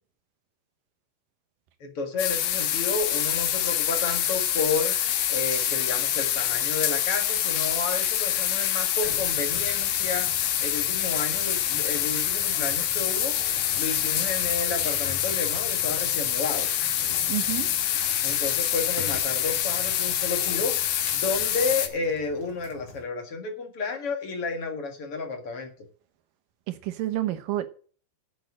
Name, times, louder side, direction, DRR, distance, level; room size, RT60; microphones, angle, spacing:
voice 1, 1.8-4.9 5.3-16.7 18.2-25.7, left 3 dB, 45° left, 2.3 m, -31 dB
sound 1, 2.2-21.9, left 11 dB, 90° left, 3.0 m, -26 dB
sound 2, 9.0-23.0, left 2 dB, 25° left, 2.4 m, -45 dB
voice 2, 17.3-17.7 26.9-27.7, right 14 dB, 75° right, 2.7 m, -29 dB
8.7 x 7.2 x 8.5 m
omnidirectional pair, 4.0 m